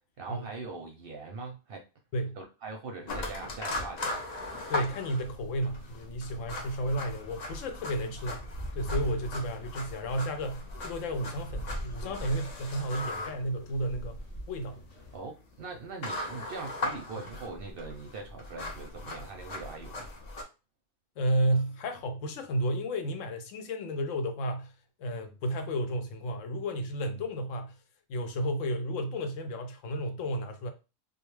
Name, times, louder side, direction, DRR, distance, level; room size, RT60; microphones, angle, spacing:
voice 1, 0.2-1.8 2.4-4.2 15.1-20.1, right 3 dB, 60° right, 0.7 m, -41 dB
sound 1, 3.1-20.4, left 2 dB, 60° left, 0.4 m, -39 dB
sound 2, 3.2-15.2, equal, 45° left, 0.8 m, -44 dB
voice 2, 4.7-8.4 8.7-14.8 21.2-24.7 25.0-27.8 28.1-30.7, equal, 80° left, 0.9 m, -32 dB
2.3 x 2.3 x 3.1 m
omnidirectional pair, 1.3 m